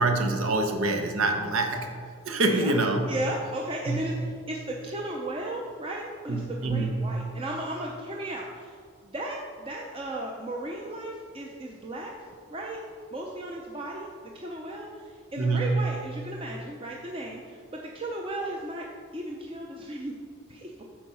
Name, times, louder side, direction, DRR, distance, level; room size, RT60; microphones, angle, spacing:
voice 1, 0.0-2.0 2.2-3.1 3.9-4.1 6.3-7.1 15.4-15.8, right 2 dB, 80° right, 4 dB, 1.0 m, -26 dB
voice 2, 3.1-8.8 9.0-12.8 13.1-18.9 19.1-20.1 20.5-20.8, right 1 dB, 25° right, -1 dB, 0.6 m, -35 dB
8.7 x 4.6 x 5.5 m, 2.2 s
head